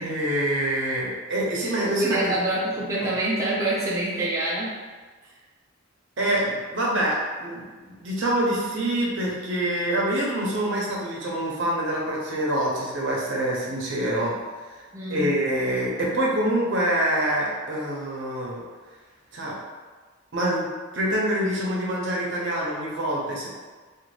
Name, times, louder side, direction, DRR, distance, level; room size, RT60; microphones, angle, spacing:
voice 1, 0.0-2.2 6.2-14.3 15.1-18.6 19.3-19.5 20.3-20.7 20.9-23.5, right 1 dB, 60° right, -4 dB, 0.7 m, -25 dB
voice 2, 1.6-4.8 14.9-15.6, right 1 dB, 15° right, -7 dB, 0.4 m, -27 dB
2.5 x 2.3 x 3.2 m, 1.4 s
head